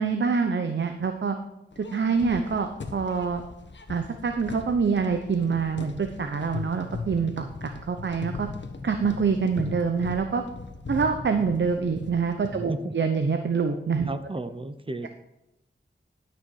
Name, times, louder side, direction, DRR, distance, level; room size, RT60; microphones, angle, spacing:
voice 1, 0.0-1.4 1.9-3.4 3.9-8.5 8.8-10.4 10.9-14.1, right 5 dB, 65° right, 6 dB, 0.9 m, -26 dB
sound 1, 1.7-12.7, left 4 dB, 65° left, 1.4 m, -39 dB
voice 2, 12.5-12.9 14.1-15.1, right 2 dB, 25° right, 11 dB, 0.8 m, -33 dB
12.0 x 6.2 x 4.7 m, 0.91 s
wide cardioid pair, 65°, 20 cm